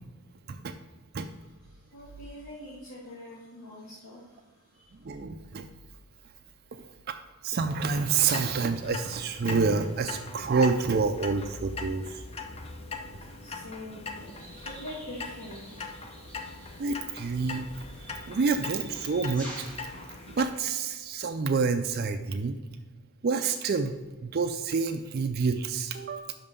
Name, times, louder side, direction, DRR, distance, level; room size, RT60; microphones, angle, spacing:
voice 1, 1.7-4.9 13.2-15.9, left 1 dB, 85° left, -5 dB, 2.0 m, -45 dB
voice 2, 5.0-5.7 7.1-7.2 7.4-12.2 16.8-17.7 18.3-19.6 20.4-22.6 23.2-23.9 24.2-26.3, right 4 dB, 45° right, 6 dB, 0.4 m, -28 dB
Clock, 7.9-20.4, left 3 dB, 25° left, 0.7 m, -41 dB
sound 1, 14.1-20.6, right 1 dB, 5° left, 1.8 m, -49 dB
6.0 x 5.5 x 6.6 m, 1.3 s
head